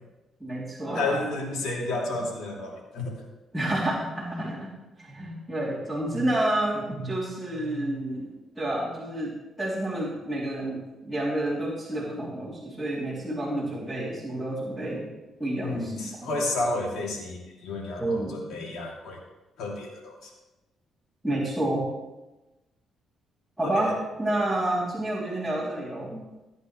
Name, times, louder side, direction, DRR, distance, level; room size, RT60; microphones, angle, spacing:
voice 1, 0.4-1.2 1.6-1.7 2.1-2.2 3.5-4.7 5.0-15.1 15.4-15.9 16.2-16.3 18.0-18.8 21.2-21.9 23.6-23.9 24.2-26.2, right 1 dB, ahead, -9 dB, 3.2 m, -29 dB
voice 2, 0.9-3.2 15.6-19.2 19.6-20.3 23.6-23.9, left 2 dB, 80° left, -2 dB, 2.9 m, -31 dB
16.5 x 9.3 x 3.3 m, 1.1 s
cardioid pair, 90°, 0 cm